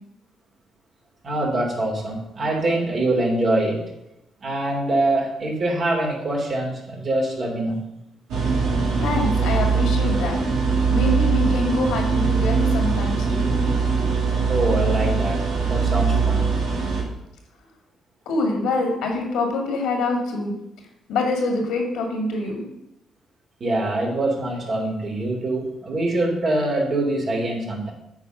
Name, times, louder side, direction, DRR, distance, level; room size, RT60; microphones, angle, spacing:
voice 1, 1.2-3.8 4.4-7.8 14.5-16.5 23.6-27.9, right 1 dB, 50° right, -1 dB, 3.0 m, -24 dB
sound 1, 8.3-17.0, right 5 dB, 80° right, 1.9 m, -21 dB
voice 2, 9.0-10.4 10.9-13.4 18.3-20.5 21.1-22.6, left 2 dB, 80° left, 2 dB, 2.1 m, -25 dB
8.5 x 4.5 x 6.6 m, 0.86 s
supercardioid pair, 55°, 0 cm